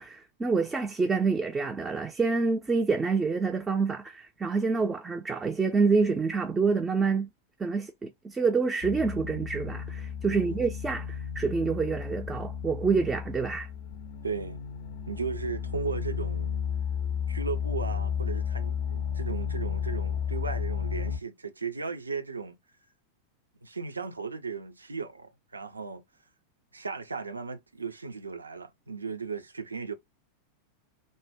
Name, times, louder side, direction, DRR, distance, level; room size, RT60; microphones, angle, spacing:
voice 1, 0.0-7.3 7.6-13.7, right 4 dB, 15° right, 0.4 m, -27 dB
sound 1, 8.8-21.2, left 7 dB, 55° left, 0.4 m, -33 dB
voice 2, 10.3-10.8 14.2-14.6 15.1-16.6 17.3-22.6 23.6-26.0 26.7-29.9, right 5 dB, 80° right, 0.5 m, -36 dB
2.6 x 2.0 x 3.4 m
figure-of-eight pair, 90°, 0 cm